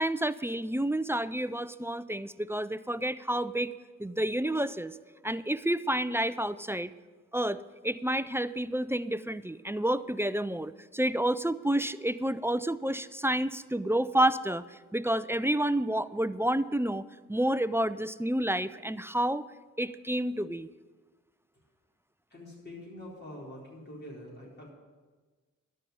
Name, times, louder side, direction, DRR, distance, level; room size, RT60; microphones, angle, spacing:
voice 1, 0.0-3.7 4.0-5.0 5.2-6.9 7.3-19.4 19.8-20.7, right 1 dB, 10° right, 15 dB, 0.4 m, -29 dB
voice 2, 22.3-24.7, left 1 dB, 35° left, -5 dB, 4.4 m, -45 dB
12.5 x 5.5 x 9.3 m, 1.3 s
cardioid pair, 45°, 33 cm